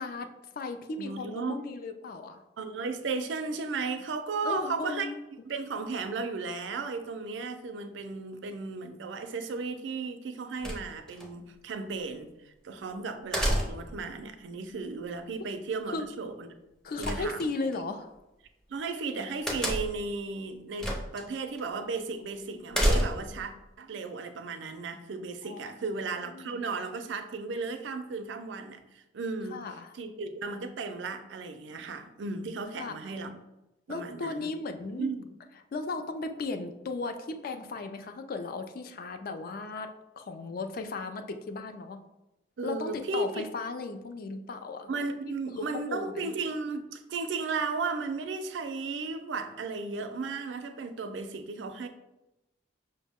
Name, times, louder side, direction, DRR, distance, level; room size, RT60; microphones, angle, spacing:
voice 1, 0.0-2.4 4.4-5.2 15.9-16.1 16.8-18.1 22.5-23.1 25.4-25.8 26.3-26.6 29.5-29.9 32.8-32.9 33.9-35.1 35.7-42.0 42.6-44.9 45.5-46.3, left 3 dB, 50° left, 7 dB, 0.4 m, -36 dB
voice 2, 1.0-1.6 2.6-5.1 5.4-12.3 12.6-16.5 17.0-17.4 18.7-23.5 23.8-29.6 29.9-33.4 33.9-34.5 35.0-35.3 42.6-43.4 44.9-51.9, right 4 dB, 80° right, 8 dB, 0.4 m, -35 dB
sound 1, 10.6-11.3 13.3-14.0 17.0-17.8 19.5-20.1 20.8-21.2 21.6-21.7 22.7-23.4, equal, 5° left, 0.5 m, -28 dB
5.6 x 2.1 x 3.5 m, 0.94 s
head